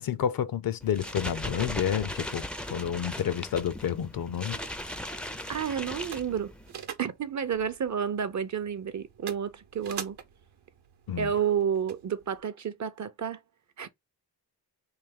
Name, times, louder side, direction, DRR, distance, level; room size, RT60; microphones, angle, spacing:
voice 1, 0.0-2.4 2.7-4.6 11.1-11.3, left 9 dB, 55° left, 0.5 m, -29 dB
sound 1, 0.8-6.7, left 1 dB, 5° left, 0.4 m, -38 dB
sound 2, 4.4-12.4, right 8 dB, 65° right, 0.9 m, -46 dB
voice 2, 5.5-6.5 7.0-10.2 11.2-13.4 13.8-13.9, right 8 dB, 40° right, 0.6 m, -30 dB
3.3 x 2.6 x 3.6 m
cardioid pair, 80°, 42 cm